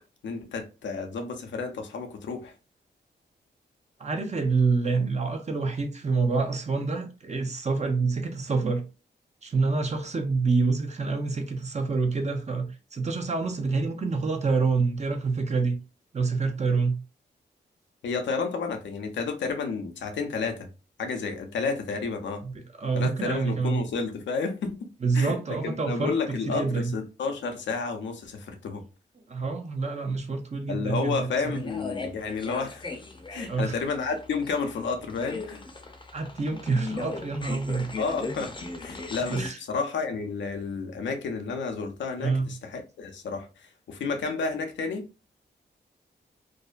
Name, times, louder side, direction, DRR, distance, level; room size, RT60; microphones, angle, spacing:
voice 1, 0.2-2.5 18.0-20.7 21.0-22.4 22.9-24.9 25.1-25.4 25.6-28.8 30.7-32.9 33.3-35.6 38.0-38.5 38.8-45.1, left 4 dB, 80° left, 0.6 m, -31 dB
voice 2, 4.0-8.8 9.4-15.8 16.1-17.0 22.4-23.8 25.0-26.9 29.3-31.6 33.5-33.8 36.1-37.9 39.3-39.6 42.2-42.5, right 4 dB, 35° right, 0.6 m, -27 dB
sound 1, 31.1-39.5, left 3 dB, 25° left, 0.6 m, -38 dB
2.5 x 2.1 x 2.4 m
cardioid pair, 60°, 19 cm